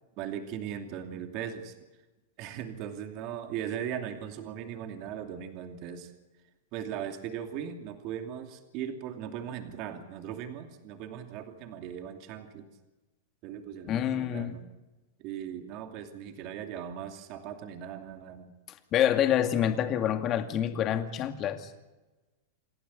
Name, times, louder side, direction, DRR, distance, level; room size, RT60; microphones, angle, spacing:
voice 1, 0.2-1.8 2.4-6.1 6.7-12.7 13.4-14.6 15.2-18.5, right 9 dB, 45° right, 2.7 m, -38 dB
voice 2, 13.9-14.6 18.9-21.7, left 10 dB, 30° left, 2.3 m, -27 dB
28.5 x 12.0 x 9.8 m
supercardioid pair, 145°, 0 cm